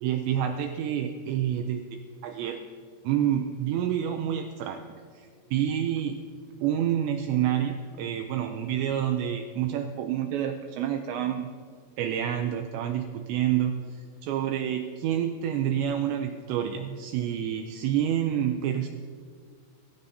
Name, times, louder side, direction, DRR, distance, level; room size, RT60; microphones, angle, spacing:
voice 1, 0.0-2.7 3.0-4.8 5.1-6.2 6.6-11.5 12.0-18.9, right 10 dB, 85° right, 5 dB, 2.5 m, -28 dB
21.5 x 14.5 x 2.8 m, 2.1 s
omnidirectional pair, 5.7 m